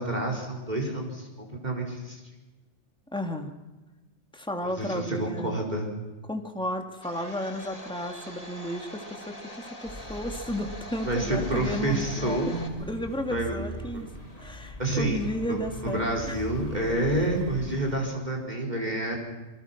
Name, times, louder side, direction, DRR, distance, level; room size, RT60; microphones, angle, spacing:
voice 1, 0.0-2.2 4.6-5.9 11.0-12.6 13.3-13.5 13.9-14.3 14.8-15.2 15.5-19.2, right 1 dB, 35° right, 1 dB, 4.8 m, -29 dB
voice 2, 3.1-3.5 4.3-5.6 6.3-12.4 12.8-14.1 14.4-16.4, equal, 5° left, 4 dB, 2.1 m, -33 dB
Domestic sounds home sounds, 7.0-12.7, left 1 dB, 50° left, 4.4 m, -43 dB
sound 1, 9.8-17.9, left 1 dB, 30° left, 4.8 m, -41 dB
27.5 x 22.5 x 6.0 m, 1.1 s
omnidirectional pair, 1.2 m